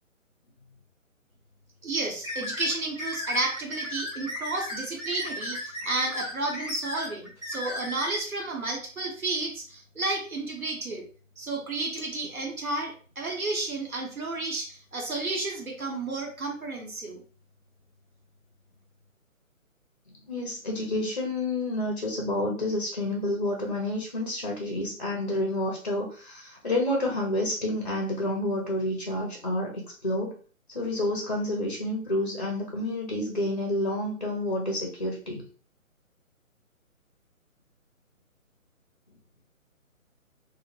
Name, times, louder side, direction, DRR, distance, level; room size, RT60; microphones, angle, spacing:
voice 1, 1.8-11.0 11.4-17.2, right 2 dB, 85° right, 0 dB, 1.0 m, -32 dB
sound 1, 2.2-8.2, left 1 dB, 10° right, 0.7 m, -35 dB
voice 2, 20.3-30.4 30.7-35.4, left 1 dB, 35° left, 0 dB, 0.4 m, -29 dB
2.1 x 2.1 x 2.9 m, 0.40 s
figure-of-eight pair, 140°, 41 cm